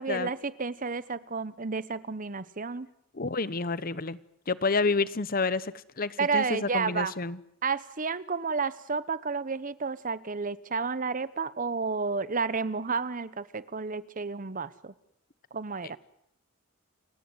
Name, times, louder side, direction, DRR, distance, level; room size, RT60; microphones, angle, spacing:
voice 1, 0.0-2.9 6.2-7.1 7.6-14.9 15.5-16.0, right 4 dB, 40° right, 17 dB, 1.0 m, -31 dB
voice 2, 3.1-4.2 4.5-7.4, left 3 dB, 45° left, 18 dB, 1.0 m, -29 dB
29.5 x 17.0 x 9.5 m, 0.73 s
head